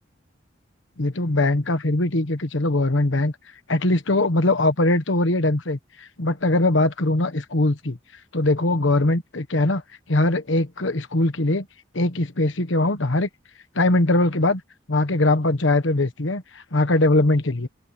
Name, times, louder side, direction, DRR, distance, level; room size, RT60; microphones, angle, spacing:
voice 1, 1.0-3.3 3.7-8.0 8.3-9.8 10.1-11.7 11.9-13.3 13.7-14.6 14.9-17.7, left 2 dB, 70° left, 1.3 m, -21 dB
open air
head